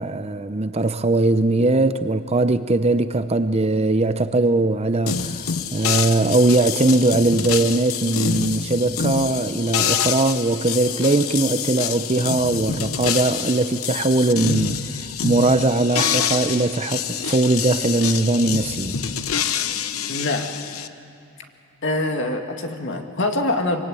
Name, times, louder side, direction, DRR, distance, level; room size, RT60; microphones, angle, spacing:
voice 1, 0.0-5.4 5.7-14.8 15.2-18.9, right 2 dB, 30° right, 0.7 m, -20 dB
sound 1, 5.1-20.9, left 7 dB, 75° left, 0.9 m, -26 dB
voice 2, 20.1-20.5 21.8-23.8, left 2 dB, 55° left, 2.1 m, -24 dB
24.5 x 24.5 x 9.1 m
head